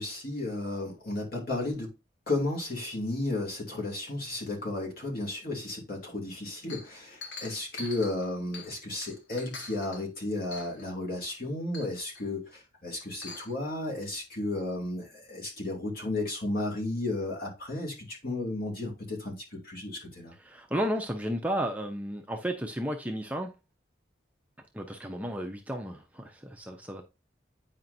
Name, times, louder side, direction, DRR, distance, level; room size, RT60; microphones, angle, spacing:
voice 1, 0.0-1.9 2.3-20.3, left 2 dB, 50° left, 2.7 m, -33 dB
Chink clink, 6.7-8.8 9.0-10.0 10.5-10.9 11.3-11.4 11.7-12.2 13.0-13.6, left 3 dB, 70° left, 1.4 m, -44 dB
voice 2, 20.3-23.5 24.7-27.0, equal, 10° right, 0.7 m, -33 dB
9.2 x 5.0 x 2.7 m
head